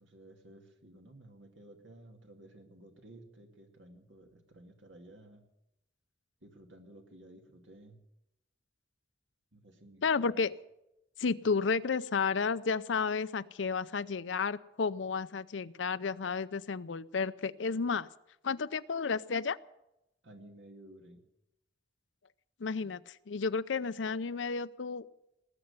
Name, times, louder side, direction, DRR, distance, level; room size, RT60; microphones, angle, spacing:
voice 1, 0.0-5.4 6.4-8.0 9.5-10.4 20.2-21.2, right 1 dB, 75° right, 4 dB, 2.4 m, -54 dB
voice 2, 10.0-10.5 11.2-18.1 18.4-19.6 22.6-25.1, left 5 dB, 75° left, 15 dB, 0.6 m, -32 dB
19.0 x 7.9 x 9.6 m, 0.87 s
head